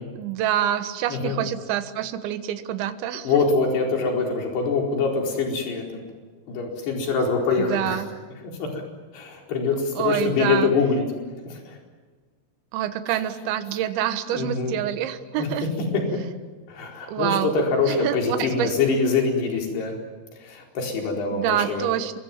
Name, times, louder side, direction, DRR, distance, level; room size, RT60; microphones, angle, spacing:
voice 1, 0.2-3.3 7.6-8.1 10.0-10.7 12.7-15.7 17.1-17.6 17.9-18.7 21.3-22.2, right 11 dB, 75° right, 9 dB, 3.6 m, -26 dB
voice 2, 3.2-6.0 6.5-8.0 8.6-8.8 9.1-11.0 11.5-11.8 14.3-14.8 15.4-15.5 16.7-20.0 20.4-21.9, left 4 dB, 60° left, 0 dB, 6.4 m, -24 dB
28.5 x 23.0 x 7.4 m, 1.4 s
omnidirectional pair, 5.5 m